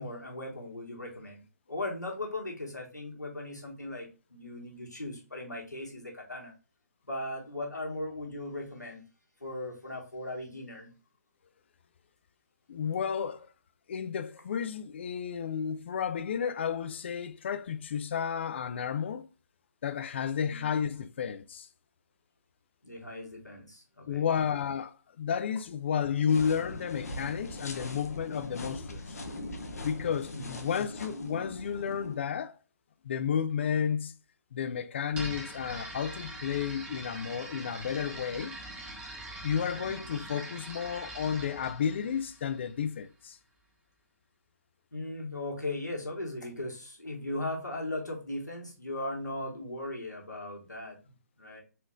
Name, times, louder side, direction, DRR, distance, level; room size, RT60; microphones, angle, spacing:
voice 1, 0.0-1.4 1.7-6.5 7.1-9.0 9.4-10.9 20.4-20.6 22.8-24.3 30.3-30.5 39.7-40.1 44.9-51.0 51.4-51.6, left 1 dB, 85° left, 1.5 m, -38 dB
voice 2, 12.7-13.5 13.9-19.3 19.8-21.7 24.1-29.2 29.8-32.6 33.0-34.1 34.5-38.5 39.4-43.4, left 7 dB, 40° left, 0.3 m, -32 dB
sound 1, 26.3-32.2, left 1 dB, 60° left, 0.8 m, -41 dB
sound 2, 35.1-42.9, right 1 dB, 15° right, 0.8 m, -43 dB
4.1 x 3.0 x 2.3 m
figure-of-eight pair, 140°, 9 cm